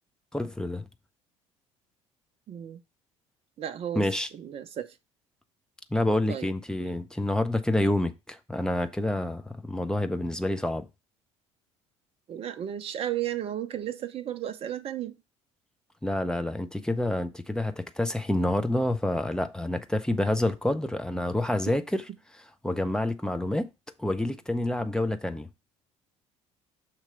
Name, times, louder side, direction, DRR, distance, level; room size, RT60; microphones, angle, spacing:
voice 1, 0.3-0.8 4.0-4.3 5.9-10.8 16.0-22.0 22.6-23.7 24.0-25.5, left 1 dB, 5° left, 0.6 m, -28 dB
voice 2, 2.5-2.8 3.6-4.1 4.3-4.9 6.3-6.5 12.3-15.2, right 11 dB, 40° right, 0.6 m, -34 dB
6.6 x 3.0 x 5.4 m
figure-of-eight pair, 55°, 16 cm